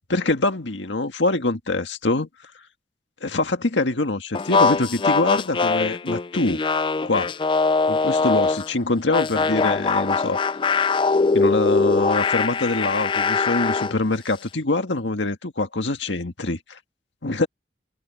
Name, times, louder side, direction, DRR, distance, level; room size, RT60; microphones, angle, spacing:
voice 1, 0.1-2.3 3.2-6.6 7.0-7.3 7.9-10.4 11.3-16.8 17.2-17.5, left 2 dB, 90° left, 1.8 m, -24 dB
sound 1, 4.3-8.7 9.1-14.0, left 4 dB, 25° left, 0.3 m, -22 dB
open air
head